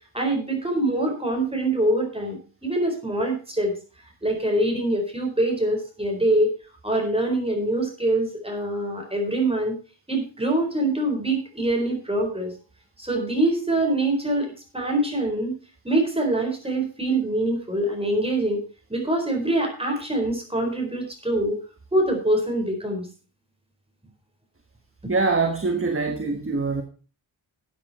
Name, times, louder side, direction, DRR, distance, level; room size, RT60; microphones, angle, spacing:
voice 1, 0.1-3.7 4.2-6.5 6.8-9.8 10.1-12.5 13.0-14.5 14.7-15.6 15.8-18.6 18.9-21.6 21.9-23.1, right 1 dB, 10° right, 4.2 m, -24 dB
voice 2, 25.1-26.8, right 3 dB, 25° right, 1.3 m, -24 dB
12.5 x 8.6 x 4.2 m
wide cardioid pair, 115°, 48 cm